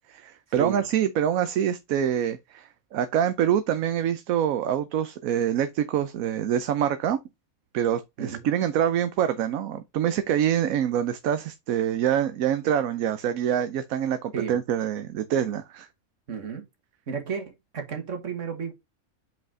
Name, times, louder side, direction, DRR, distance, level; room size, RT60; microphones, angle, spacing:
voice 1, 0.1-7.2 7.7-15.9, right 9 dB, 75° right, 1.1 m, -25 dB
voice 2, 8.2-8.5 14.3-14.6 16.3-16.6 17.1-18.7, right 6 dB, 60° right, 2.0 m, -33 dB
5.3 x 5.3 x 3.7 m
omnidirectional pair, 1.5 m